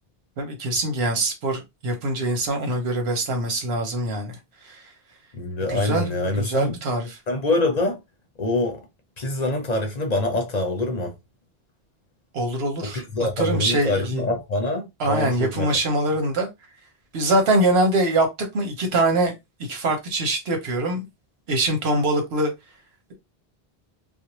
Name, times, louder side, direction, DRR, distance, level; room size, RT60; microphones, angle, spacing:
voice 1, 0.4-4.4 4.6-4.8 5.7-7.2 12.3-13.0 13.4-14.3 15.0-16.5 17.1-18.3 18.5-19.3 19.7-21.0 21.5-22.5, right 1 dB, 80° right, 1.1 m, -23 dB
voice 2, 5.3-6.8 7.3-8.0 8.4-8.8 9.2-11.1 12.8-15.8, left 2 dB, 50° left, 0.6 m, -25 dB
2.5 x 2.0 x 2.9 m
omnidirectional pair, 1.0 m